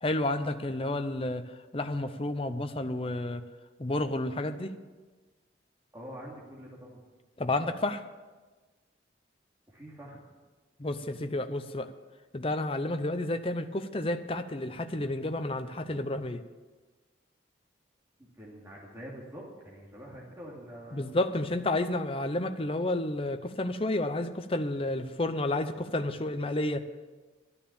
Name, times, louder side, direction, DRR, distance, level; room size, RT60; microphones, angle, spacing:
voice 1, 0.0-3.4 3.8-4.7 7.4-8.0 10.8-11.9 12.3-16.4 20.9-26.9, left 2 dB, 30° left, 8 dB, 0.7 m, -31 dB
voice 2, 5.9-7.0 9.7-10.2 18.2-21.4, equal, 15° right, -4 dB, 2.6 m, -46 dB
12.5 x 9.8 x 7.1 m, 1.3 s
head